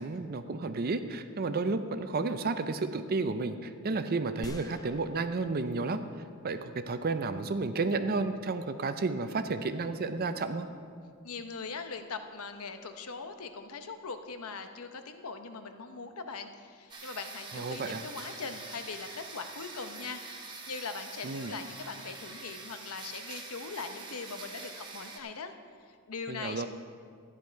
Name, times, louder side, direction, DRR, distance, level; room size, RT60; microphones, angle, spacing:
voice 1, 0.0-6.0 6.4-10.7 17.5-18.0 21.2-21.5 26.3-26.7, right 3 dB, 45° right, 10 dB, 0.5 m, -32 dB
sound 1, 4.4-6.2 6.7-6.8, left 1 dB, 15° left, 0.4 m, -48 dB
voice 2, 11.2-25.5 25.9-26.7, left 4 dB, 70° left, 8 dB, 0.8 m, -41 dB
sound 2, 16.9-25.2, right 3 dB, 20° right, 1.2 m, -45 dB
13.0 x 10.0 x 4.6 m, 2.2 s
head